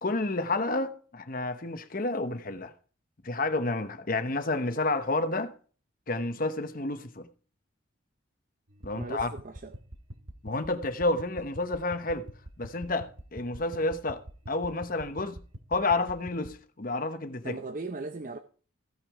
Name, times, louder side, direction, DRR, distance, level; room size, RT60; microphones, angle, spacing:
voice 1, 0.0-2.7 3.2-5.5 6.1-7.3 8.8-9.3 10.4-12.3 12.6-14.2 14.5-15.4 15.7-17.6, left 2 dB, 45° left, 1.0 m, -30 dB
sound 1, 8.7-16.5, equal, 75° right, 1.9 m, -47 dB
voice 2, 8.9-9.7 17.4-18.4, right 3 dB, 40° right, 0.7 m, -38 dB
16.0 x 6.1 x 4.8 m
head